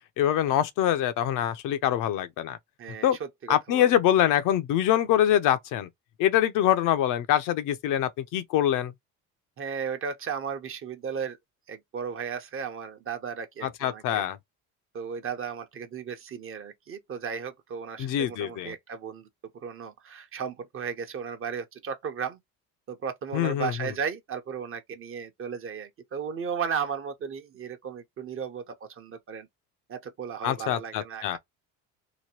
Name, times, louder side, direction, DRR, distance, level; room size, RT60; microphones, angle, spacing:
voice 1, 0.2-2.6 3.0-3.2 3.5-5.9 6.2-8.9 13.6-14.4 18.0-18.7 23.3-23.7 30.4-31.4, left 11 dB, 65° left, 0.6 m, -24 dB
voice 2, 2.8-3.1 3.4-3.9 9.6-11.4 11.7-14.3 14.9-19.3 19.6-22.4 22.9-29.5 29.9-31.4, right 7 dB, 40° right, 0.8 m, -35 dB
2.9 x 2.2 x 2.9 m
cardioid pair, 110°, 34 cm